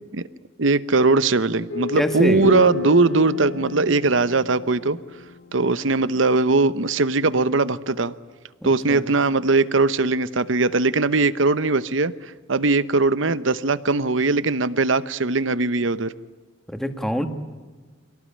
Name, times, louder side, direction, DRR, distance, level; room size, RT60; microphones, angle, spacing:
voice 1, 0.6-5.0 5.5-8.1 8.6-12.1 12.5-16.1, right 3 dB, 75° right, 15 dB, 0.9 m, -20 dB
sound 1, 1.7-6.1, left 4 dB, 55° left, 1.0 m, -31 dB
voice 2, 2.0-2.5 8.6-9.0 16.7-17.3, equal, ahead, 7 dB, 1.7 m, -25 dB
26.0 x 18.0 x 9.9 m, 1.4 s
head